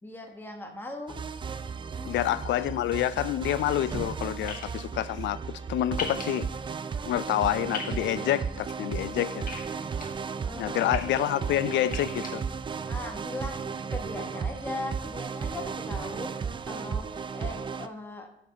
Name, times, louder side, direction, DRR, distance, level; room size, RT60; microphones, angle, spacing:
voice 1, 0.0-1.2 1.9-2.4 10.5-10.9 12.8-18.3, left 2 dB, 10° left, 1.4 m, -39 dB
sound 1, 1.1-17.9, right 6 dB, 25° right, 0.4 m, -34 dB
voice 2, 2.0-5.4 5.7-6.5 7.1-9.5 10.6-12.4, left 12 dB, 70° left, 0.4 m, -28 dB
sound 2, 4.5-4.7 6.0-6.2 7.7-7.9 9.5-10.0 10.7-11.0 11.8-12.3, left 5 dB, 45° left, 1.6 m, -36 dB
12.5 x 5.4 x 3.9 m
wide cardioid pair, 165°, 20 cm